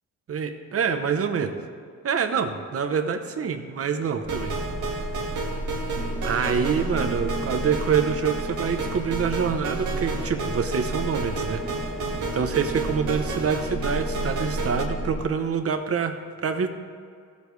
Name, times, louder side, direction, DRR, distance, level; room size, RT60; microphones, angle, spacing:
voice 1, 0.3-1.5 2.0-4.5 6.2-11.6 12.3-16.2 16.4-16.7, right 6 dB, 50° right, 7 dB, 0.9 m, -26 dB
sound 1, 4.2-15.3, right 1 dB, 30° right, 1.5 m, -33 dB
sound 2, 4.3-14.8, right 3 dB, 85° right, 1.8 m, -31 dB
16.5 x 8.3 x 3.3 m, 2.2 s
wide cardioid pair, 145°, 29 cm